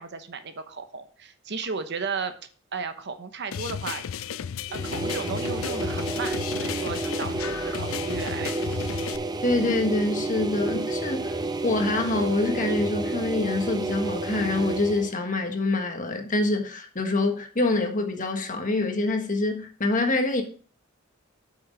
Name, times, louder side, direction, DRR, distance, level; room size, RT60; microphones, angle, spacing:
voice 1, 0.0-2.4 2.7-4.1 4.7-8.7, right 5 dB, 55° right, 0.9 m, -34 dB
sound 1, 3.5-9.2, left 8 dB, 70° left, 0.4 m, -34 dB
sound 2, 4.7-15.1, right 2 dB, 20° right, 0.6 m, -30 dB
voice 2, 9.4-20.4, left 2 dB, 40° left, 1.5 m, -26 dB
8.1 x 6.3 x 5.2 m
head